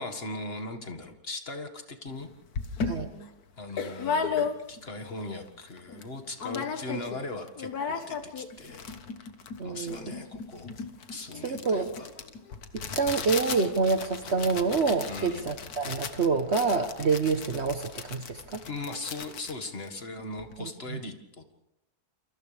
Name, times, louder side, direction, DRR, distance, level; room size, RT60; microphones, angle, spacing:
voice 1, 0.0-2.3 3.6-8.9 9.6-10.7 11.1-12.1 15.1-15.5 18.7-21.4, left 2 dB, 40° left, 6 dB, 2.0 m, -39 dB
sound 1, 2.1-2.2 2.5-4.9 5.3-5.4 5.6-6.1 6.4-7.2 7.5-20.5, left 5 dB, 80° left, 1.8 m, -35 dB
voice 2, 9.6-10.0 11.4-11.9 12.7-18.6 20.6-21.0, right 4 dB, 50° right, 6 dB, 1.3 m, -27 dB
sound 2, 13.6-18.9, equal, 10° left, 7.1 m, -54 dB
28.5 x 28.5 x 3.4 m, 0.91 s
omnidirectional pair, 1.6 m